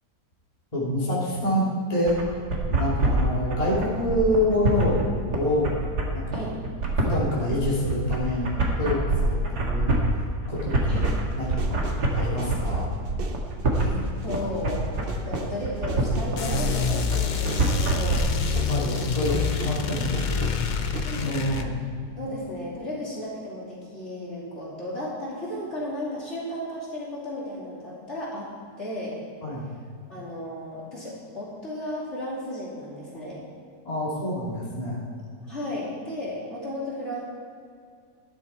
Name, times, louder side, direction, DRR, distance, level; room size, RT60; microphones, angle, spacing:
voice 1, 0.7-1.6 1.9-2.2 2.7-5.7 6.1-6.6 7.0-10.0 10.5-11.0 11.4-11.8 12.1-12.9 18.7-20.5 21.2-21.7 29.4-29.7 33.8-35.0, left 1 dB, 20° left, -7 dB, 2.9 m, -27 dB
sound 1, 2.1-18.2, right 2 dB, 75° right, 2.4 m, -25 dB
sound 2, 10.9-21.0, right 4 dB, 40° right, 0.9 m, -40 dB
voice 2, 13.8-18.3 19.0-19.2 21.0-21.4 22.2-28.5 28.8-29.2 30.1-33.4 35.4-37.2, left 1 dB, 40° left, -6 dB, 3.2 m, -34 dB
sound 3, 16.4-21.7, left 6 dB, 70° left, 0.4 m, -27 dB
12.0 x 11.5 x 4.4 m, 2.2 s
omnidirectional pair, 1.8 m